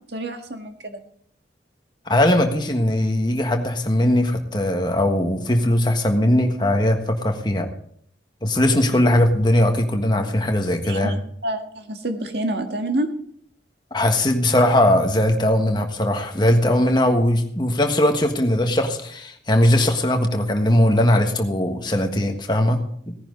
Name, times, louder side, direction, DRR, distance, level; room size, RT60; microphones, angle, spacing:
voice 1, 0.1-1.0 8.9-9.1 10.8-11.2 11.4-13.1, right 1 dB, 70° right, 5 dB, 1.8 m, -28 dB
voice 2, 2.1-7.7 8.4-11.2 13.9-23.1, left 1 dB, 25° left, 4 dB, 1.5 m, -19 dB
17.0 x 10.5 x 3.9 m, 0.64 s
head